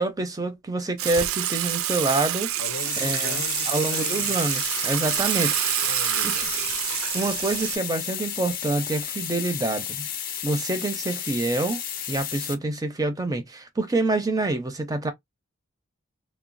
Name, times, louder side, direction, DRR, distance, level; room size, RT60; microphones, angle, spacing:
voice 1, 0.0-2.5 3.0-5.6 6.2-6.3 7.1-10.1 10.4-11.8 12.1-15.1, right 2 dB, 15° right, 0.5 m, -27 dB
Water / Water tap faucet / Sink (filling or washing), 1.0-7.8, right 12 dB, 75° right, 0.4 m, -27 dB
voice 2, 2.6-4.4 5.8-6.7, left 4 dB, 80° left, 0.6 m, -39 dB
sound 1, 2.7-12.6, left 9 dB, 40° left, 0.5 m, -33 dB
3.0 x 2.1 x 2.5 m
head